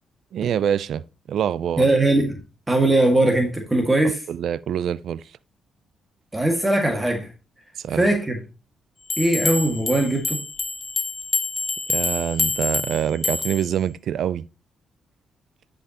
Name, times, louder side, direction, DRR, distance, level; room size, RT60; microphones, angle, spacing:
voice 1, 0.3-1.9 4.3-5.2 7.8-8.1 11.9-14.5, right 9 dB, 70° right, 0.4 m, -25 dB
voice 2, 1.8-2.3 2.7-4.2 6.3-7.3 7.9-8.4 9.2-10.4, right 1 dB, 15° right, 1.8 m, -20 dB
sound 1, 9.1-13.7, left 3 dB, 40° left, 1.4 m, -27 dB
10.0 x 5.3 x 2.9 m
cardioid pair, 70°, 0 cm